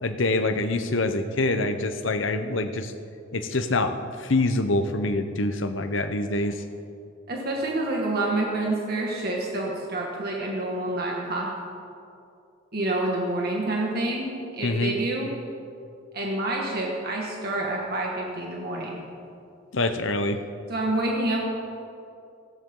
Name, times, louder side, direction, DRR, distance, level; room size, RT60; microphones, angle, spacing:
voice 1, 0.0-2.9 3.3-6.6 14.6-14.9 19.7-20.4, left 2 dB, 75° left, 8 dB, 1.0 m, -25 dB
voice 2, 7.3-11.5 12.7-15.3 16.1-19.0 20.7-21.4, right 2 dB, 50° right, -2 dB, 2.1 m, -28 dB
18.5 x 16.5 x 3.9 m, 2.6 s
head